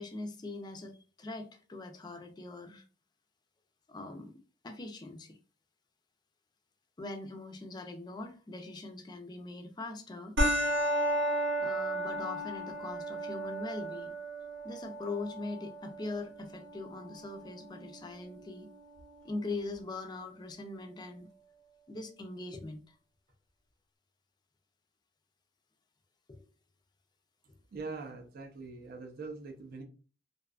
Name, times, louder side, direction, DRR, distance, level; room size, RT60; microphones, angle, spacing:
voice 1, 0.0-2.8 3.9-4.3 4.6-5.4 7.0-10.4 11.6-14.1 14.6-18.7 19.2-21.3 21.9-22.9 26.3-26.5 27.5-27.6, left 2 dB, 25° left, 0.4 m, -41 dB
sound 1, 10.4-19.3, right 1 dB, 75° right, 0.8 m, -34 dB
voice 2, 27.7-29.8, right 4 dB, 55° right, 0.4 m, -42 dB
2.5 x 2.4 x 2.3 m
head